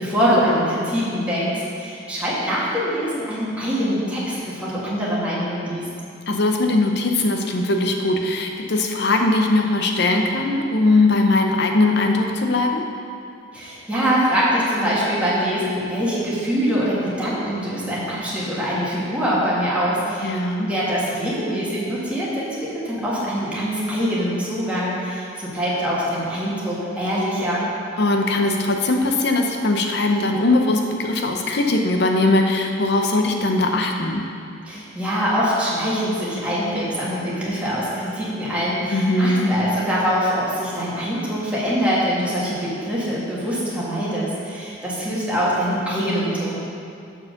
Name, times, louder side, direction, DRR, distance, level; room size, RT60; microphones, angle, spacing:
voice 1, 0.0-5.9 13.5-27.7 34.7-46.6, equal, 5° right, -8 dB, 1.8 m, -23 dB
voice 2, 6.3-12.8 20.2-20.7 28.0-34.2 38.9-39.5, left 2 dB, 60° left, 3 dB, 0.8 m, -20 dB
7.1 x 4.8 x 6.5 m, 2.5 s
head